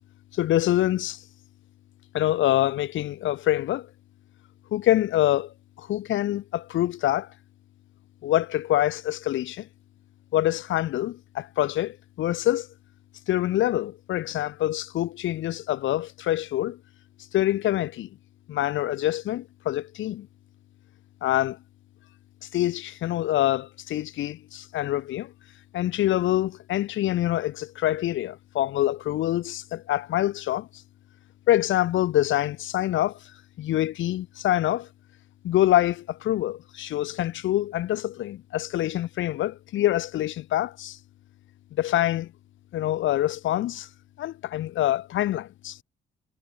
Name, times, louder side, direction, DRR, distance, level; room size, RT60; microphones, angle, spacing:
voice 1, 0.3-1.2 2.1-3.9 4.7-7.3 8.2-9.7 10.3-12.7 13.3-16.8 17.3-18.1 18.5-20.3 21.2-21.6 22.4-25.3 25.7-30.7 31.5-33.3 33.6-34.9 35.4-41.0 41.7-42.3 42.7-43.9 44.2-45.8, left 14 dB, 75° left, 1.2 m, -25 dB
cardioid pair, 90°, 20 cm